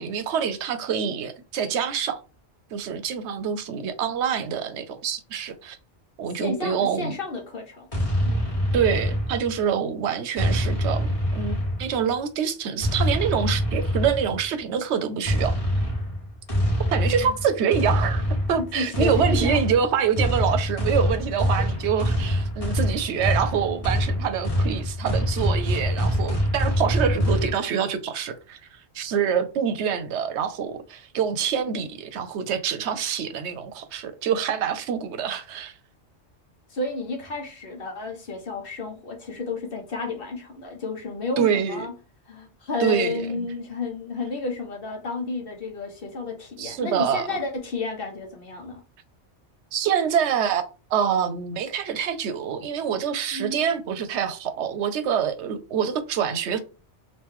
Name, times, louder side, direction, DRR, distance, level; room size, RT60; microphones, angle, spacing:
voice 1, 0.0-2.2 2.7-5.8 6.2-7.2 8.7-15.6 16.9-28.6 28.9-35.7 41.4-41.9 42.8-43.5 46.6-47.2 49.7-50.6 50.9-56.6, right 7 dB, 80° right, 0.9 m, -26 dB
voice 2, 6.4-7.9 8.2-8.5 17.1-17.3 18.6-19.6 36.7-41.9 42.3-48.8 53.3-53.6, left 3 dB, 55° left, 1.1 m, -32 dB
sound 1, 7.9-9.7 10.4-12.1 12.8-14.4 15.2-27.5, equal, 30° left, 1.1 m, -25 dB
3.0 x 2.8 x 3.6 m
omnidirectional pair, 1.2 m